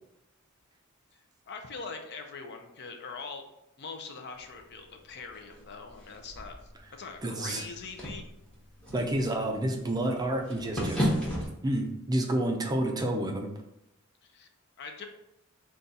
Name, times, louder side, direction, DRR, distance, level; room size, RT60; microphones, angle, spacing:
voice 1, 1.5-3.4 3.8-6.6 6.9-8.2 14.2-14.5 14.8-15.1, left 4 dB, 50° left, 4 dB, 0.5 m, -42 dB
sound 1, 4.4-11.5, equal, 5° left, 0.9 m, -36 dB
voice 2, 7.2-7.6 8.9-11.1 11.6-13.5, right 1 dB, 20° right, 2 dB, 0.4 m, -29 dB
3.9 x 2.3 x 3.9 m, 0.82 s
head